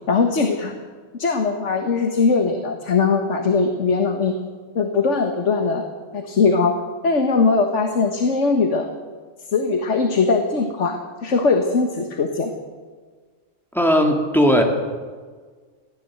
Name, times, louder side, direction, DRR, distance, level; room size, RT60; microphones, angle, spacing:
voice 1, 0.1-0.8 1.2-4.4 4.8-5.9 6.1-6.8 7.0-8.9 9.5-12.5, left 4 dB, 70° left, 5 dB, 1.8 m, -20 dB
voice 2, 13.7-14.6, equal, ahead, 1 dB, 2.9 m, -17 dB
22.0 x 15.5 x 7.8 m, 1.5 s
omnidirectional pair, 1.3 m